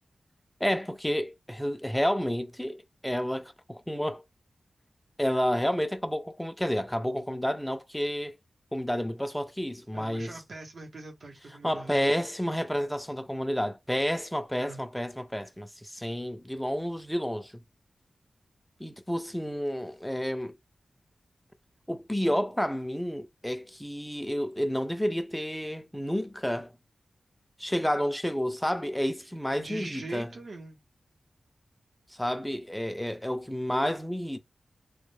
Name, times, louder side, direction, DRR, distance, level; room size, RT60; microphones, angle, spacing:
voice 1, 0.6-4.2 5.2-8.4 8.7-10.4 11.6-17.6 18.8-20.5 21.9-26.7 27.6-30.3 32.1-34.4, equal, 5° left, 0.4 m, -30 dB
voice 2, 9.9-12.1 14.6-14.8 29.6-30.8, right 2 dB, 65° right, 0.7 m, -42 dB
2.1 x 2.1 x 3.1 m
wide cardioid pair, 80°, 0 cm